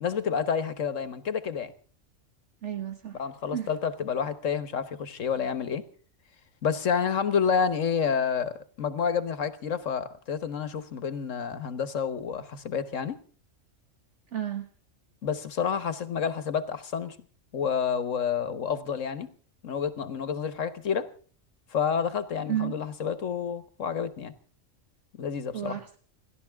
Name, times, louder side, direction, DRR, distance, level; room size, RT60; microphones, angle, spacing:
voice 1, 0.0-1.7 3.1-5.8 6.6-13.1 15.2-17.2 17.5-19.3 19.6-21.1 21.7-24.3 25.2-25.8, left 7 dB, 70° left, 13 dB, 1.6 m, -29 dB
voice 2, 2.6-3.2 3.5-3.7 14.3-14.7 22.5-22.8 25.5-26.0, right 10 dB, 65° right, 7 dB, 1.5 m, -32 dB
29.5 x 12.0 x 3.5 m, 0.43 s
omnidirectional pair, 1.4 m